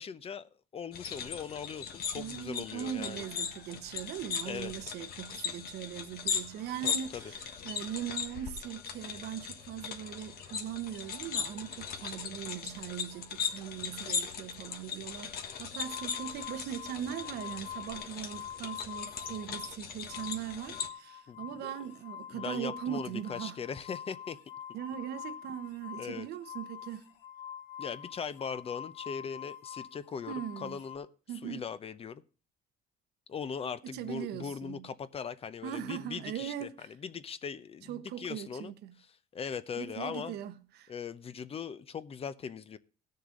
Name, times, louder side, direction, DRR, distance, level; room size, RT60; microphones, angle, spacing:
voice 1, 0.0-3.2 4.5-4.7 6.8-7.2 21.3-21.7 22.3-24.4 26.0-26.3 27.8-31.1 31.4-32.2 33.3-38.7 39.3-40.4 40.9-42.8, left 6 dB, 35° left, 0.7 m, -40 dB
sound 1, 0.9-20.9, left 7 dB, 65° left, 1.5 m, -39 dB
voice 2, 2.1-23.6 24.7-27.1 30.3-30.8 31.3-31.6 33.8-34.9 35.6-36.9 37.9-38.9 39.8-40.9, right 10 dB, 75° right, 1.0 m, -40 dB
sound 2, 15.8-19.7 20.0-31.0, left 9 dB, 85° left, 2.1 m, -45 dB
17.5 x 6.7 x 3.8 m
cardioid pair, 110°, 17 cm